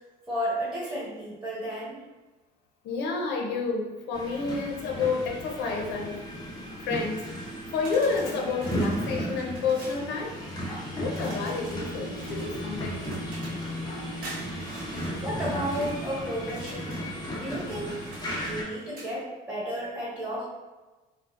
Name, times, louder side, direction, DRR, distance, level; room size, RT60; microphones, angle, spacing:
voice 1, 0.3-2.0 15.2-17.0 17.3-17.9 18.4-20.5, equal, 5° right, -9 dB, 1.4 m, -33 dB
voice 2, 2.8-6.2 6.8-7.3 7.7-10.3 11.0-13.1, left 4 dB, 80° left, 2 dB, 0.6 m, -30 dB
sound 1, 4.1-18.6, equal, 25° left, 0.7 m, -34 dB
sound 2, 7.8-10.1 11.1-13.7 14.2-16.0 16.4-17.1 17.6-19.1, right 2 dB, 60° right, 1.0 m, -46 dB
3.9 x 2.1 x 2.4 m, 1.2 s
cardioid pair, 110°, 17 cm